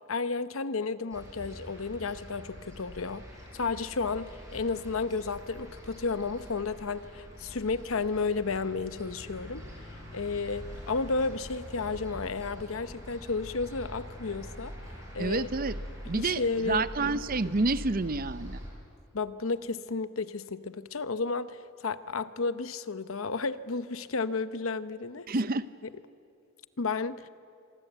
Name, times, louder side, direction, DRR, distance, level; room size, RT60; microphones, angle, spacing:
voice 1, 0.1-3.2 3.5-9.7 10.1-14.7 15.1-15.5 16.1-17.1 19.1-25.2 26.8-27.3, left 4 dB, 70° left, 13 dB, 0.8 m, -32 dB
sound 1, 1.1-18.7, equal, 15° right, 6.7 m, -44 dB
voice 2, 15.2-15.8 16.1-18.6 25.3-25.7, right 3 dB, 40° right, 14 dB, 0.7 m, -29 dB
25.5 x 24.0 x 8.1 m, 2.5 s
head